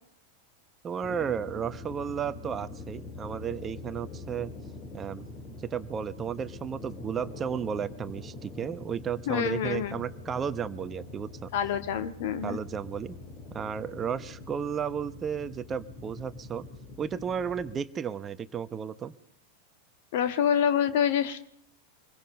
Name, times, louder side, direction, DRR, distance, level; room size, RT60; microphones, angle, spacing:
voice 1, 0.8-4.5 4.9-5.3 5.6-11.5 12.4-13.2 13.5-16.6 17.0-19.1, right 7 dB, 20° right, 13 dB, 1.0 m, -33 dB
sound 1, 1.0-17.7, left 3 dB, 30° left, 3.6 m, -44 dB
voice 2, 9.3-10.1 11.5-12.6 20.1-21.5, left 8 dB, 50° left, 10 dB, 1.9 m, -27 dB
25.5 x 21.5 x 5.5 m, 0.68 s
figure-of-eight pair, 90°, 0 cm